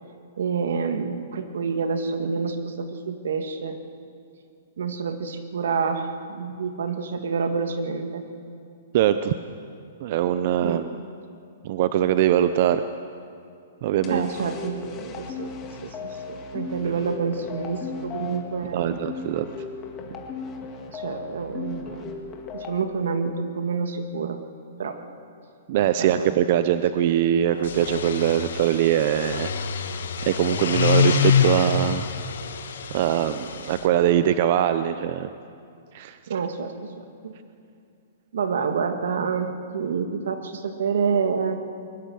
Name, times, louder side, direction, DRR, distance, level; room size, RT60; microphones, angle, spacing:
voice 1, 0.4-3.8 4.8-8.2 10.6-10.8 14.1-15.5 15.8-19.0 20.0-20.2 20.9-22.1 22.5-24.4 24.8-25.0 26.0-26.3 36.3-37.3 38.3-41.6, right 5 dB, 80° right, 6 dB, 2.2 m, -28 dB
voice 2, 8.9-9.3 10.0-11.0 11.6-12.8 13.8-14.3 18.7-19.5 25.7-29.5 29.8-29.9 30.2-32.1 32.9-35.3 35.9-36.2, right 11 dB, 40° right, 11 dB, 0.7 m, -22 dB
sound 1, 14.0-22.8, left 5 dB, 20° left, 2.0 m, -36 dB
sound 2, 27.6-33.8, left 6 dB, 75° left, 1.8 m, -25 dB
22.0 x 20.5 x 7.7 m, 2.5 s
hypercardioid pair, 170°, 0 cm